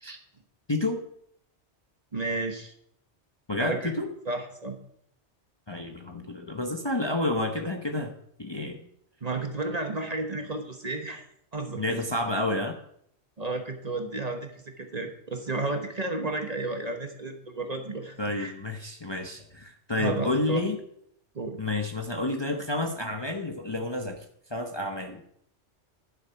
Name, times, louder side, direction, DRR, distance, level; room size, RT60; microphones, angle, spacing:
voice 1, 0.7-1.0 3.5-4.1 5.7-8.1 8.4-8.8 11.8-12.8 18.2-20.8 21.6-24.2 24.5-25.2, left 2 dB, 25° left, 3 dB, 0.8 m, -30 dB
voice 2, 2.1-2.7 3.6-3.9 4.3-4.8 9.2-11.2 11.5-12.0 13.4-18.5 19.9-20.6 21.3-21.6, right 2 dB, 35° right, 5 dB, 1.1 m, -32 dB
11.5 x 6.9 x 5.8 m, 0.70 s
omnidirectional pair, 1.2 m